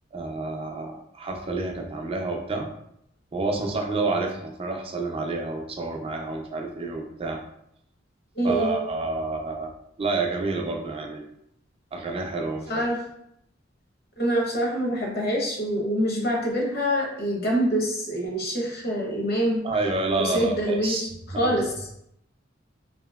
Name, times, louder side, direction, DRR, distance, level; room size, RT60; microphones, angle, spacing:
voice 1, 0.1-2.7 3.3-7.4 8.4-9.7 10.0-11.2 11.9-12.7 19.6-21.0 21.3-21.5, right 3 dB, 30° right, 2 dB, 0.4 m, -29 dB
voice 2, 8.3-8.7 12.7-13.0 14.2-19.6 20.2-21.1 21.4-21.9, equal, 55° left, -1 dB, 0.8 m, -25 dB
2.8 x 2.8 x 2.3 m, 0.75 s
head